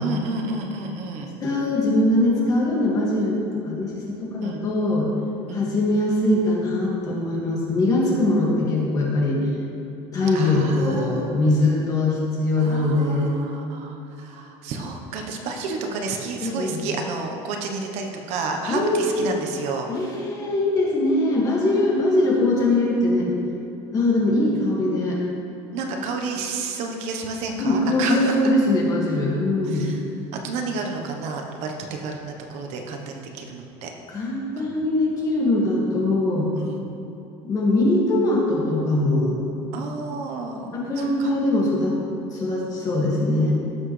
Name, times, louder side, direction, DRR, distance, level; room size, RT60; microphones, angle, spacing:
voice 1, 0.0-1.3 4.4-4.6 5.5-5.6 10.3-11.3 12.6-20.1 25.7-28.3 29.7-30.0 30.4-33.9 36.6-36.8 39.7-41.3, right 3 dB, 50° right, 3 dB, 1.1 m, -31 dB
voice 2, 1.4-5.1 5.5-9.4 10.1-13.3 16.4-16.9 18.7-19.3 19.9-23.3 23.9-25.2 26.3-26.4 27.6-29.9 34.1-36.5 37.4-39.4 40.7-42.0 42.3-43.5, left 2 dB, 25° left, -3 dB, 2.1 m, -22 dB
17.0 x 7.3 x 3.3 m, 2.8 s
cardioid pair, 170°, 14 cm